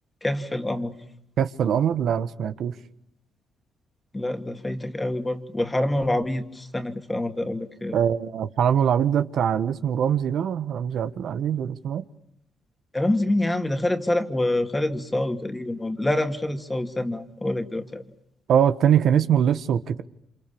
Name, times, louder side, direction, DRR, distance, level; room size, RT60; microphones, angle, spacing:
voice 1, 0.2-0.9 4.1-8.0 12.9-18.0, left 1 dB, 15° left, 2.4 m, -26 dB
voice 2, 1.4-2.7 7.9-12.0 18.5-20.0, right 9 dB, 70° right, 1.4 m, -22 dB
29.5 x 27.0 x 7.1 m
cardioid pair, 90°, 0 cm